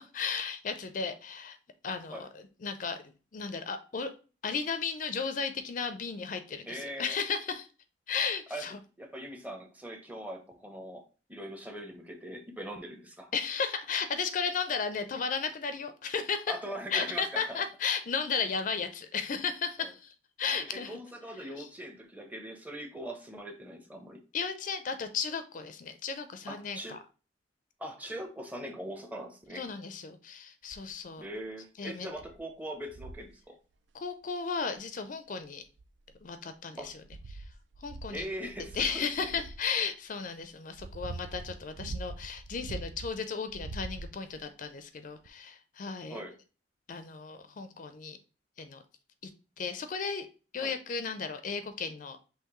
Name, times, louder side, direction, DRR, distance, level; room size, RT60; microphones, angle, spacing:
voice 1, 0.1-1.6 1.8-4.1 4.4-7.7 8.1-8.8 13.3-16.5 16.9-21.0 21.4-21.7 24.3-27.0 29.5-31.2 31.8-32.1 33.9-35.6 36.2-36.9 37.3-37.4 37.8-38.3 38.7-46.2 46.9-48.2 48.6-48.8 49.6-50.3 50.5-52.2, left 5 dB, 45° left, 9 dB, 0.4 m, -34 dB
voice 2, 6.7-7.2 8.5-8.6 9.0-11.0 11.3-13.3 16.5-17.6 19.8-19.9 20.5-24.2 26.5-27.0 27.8-29.6 31.2-33.6 36.8-36.9 38.1-39.3 46.1-46.3 50.6-50.7, right 1 dB, 10° right, 4 dB, 0.7 m, -41 dB
sound 1, 30.7-31.0 31.6-31.7 32.2-32.4 32.9-33.3 34.7-34.8 35.6-36.3 36.8-39.7 40.4-43.1 43.5-44.4 45.2-45.3, right 3 dB, 75° right, 0.4 m, -43 dB
5.6 x 3.0 x 3.0 m, 0.34 s
head